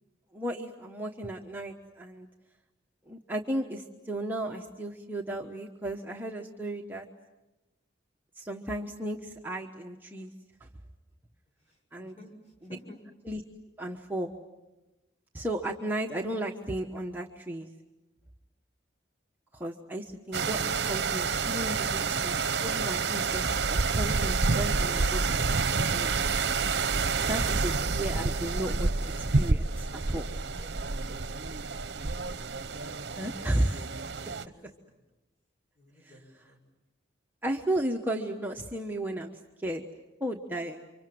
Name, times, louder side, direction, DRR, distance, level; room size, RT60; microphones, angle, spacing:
voice 1, 0.3-2.3 3.1-7.1 8.3-10.3 10.6-10.7 11.9-12.1 13.2-13.4 13.8-14.3 15.3-17.7 19.5-22.3 22.6-26.2 27.3-30.2 33.2-33.9 36.0-36.1 37.4-39.8 40.2-40.9, right 1 dB, 10° right, 1 dB, 1.1 m, -34 dB
voice 2, 11.6-13.0 30.3-32.4 34.5-35.0 35.8-36.6, left 1 dB, 35° left, 2 dB, 7.0 m, -55 dB
sound 1, 20.3-34.4, right 4 dB, 60° right, 0.9 m, -28 dB
30.0 x 25.0 x 7.8 m, 1.1 s
head